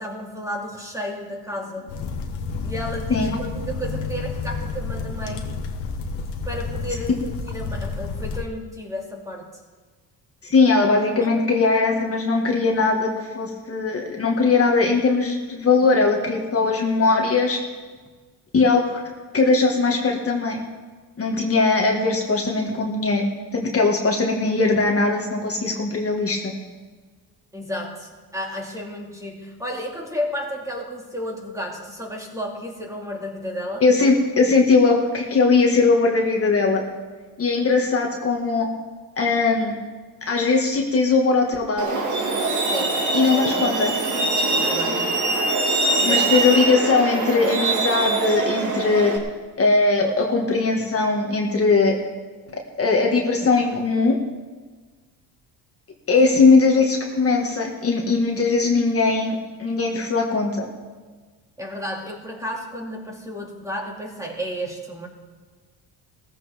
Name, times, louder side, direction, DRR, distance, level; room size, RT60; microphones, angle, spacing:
voice 1, 0.0-1.9 2.6-5.5 6.5-9.6 15.8-16.1 16.6-16.7 27.5-33.8 42.7-43.0 44.5-45.1 45.8-46.3 61.6-65.1, equal, 10° right, -1 dB, 2.4 m, -32 dB
sound 1, 1.5-7.0, left 8 dB, 65° left, 1.2 m, -38 dB
sound 2, 1.9-8.4, left 4 dB, 85° left, 1.5 m, -30 dB
voice 2, 10.4-17.6 18.5-19.0 19.3-20.6 21.2-23.3 23.5-26.5 33.8-36.8 37.4-38.7 39.2-39.8 40.3-42.0 43.1-43.9 46.0-49.1 49.6-52.0 52.8-54.2 56.1-60.7, left 4 dB, 35° left, 0 dB, 1.7 m, -20 dB
Truck, 41.8-49.2, right 2 dB, 45° right, 2.1 m, -23 dB
17.0 x 14.5 x 3.5 m, 1.4 s
cardioid pair, 115°, 40 cm